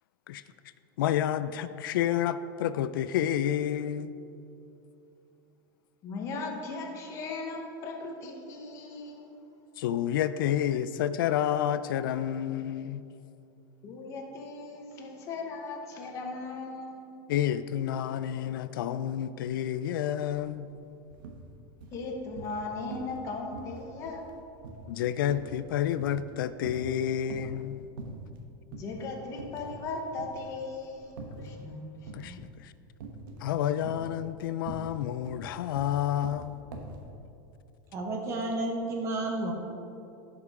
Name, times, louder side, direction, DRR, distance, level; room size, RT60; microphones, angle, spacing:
voice 1, 1.0-4.1 9.8-13.0 17.3-20.7 24.9-27.8 32.1-32.7 33.4-36.6, left 10 dB, 85° left, 0.4 m, -29 dB
voice 2, 6.0-9.3 13.8-17.3 21.9-24.2 28.7-32.4, left 3 dB, 25° left, 1.0 m, -38 dB
sound 1, 20.2-20.4 20.7-21.4 21.8-22.6 22.9-23.2 23.5-26.3 26.6-27.6 28.0-28.4 28.7-28.9 29.3-29.9 30.2-31.5 32.1-32.5 33.0-33.5 33.8-37.0, right 3 dB, 80° right, 1.2 m, -43 dB
voice 3, 37.9-39.5, right 2 dB, 25° right, 1.1 m, -31 dB
11.0 x 5.5 x 4.8 m
supercardioid pair, 170°, 11 cm